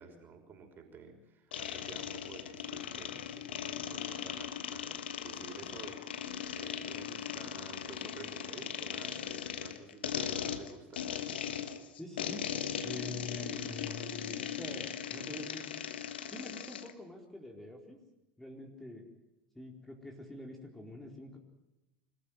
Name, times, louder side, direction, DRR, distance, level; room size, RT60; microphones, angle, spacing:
voice 1, 0.0-11.0, right 5 dB, 40° right, 4 dB, 5.7 m, -52 dB
sound 1, 1.5-16.9, left 8 dB, 85° left, 1.4 m, -39 dB
voice 2, 12.0-12.5 12.8-15.7 16.3-18.0 18.4-19.1 19.5-21.4, left 2 dB, 5° left, 2 dB, 4.2 m, -45 dB
25.5 x 14.5 x 9.4 m, 0.96 s
hypercardioid pair, 80°, 5 cm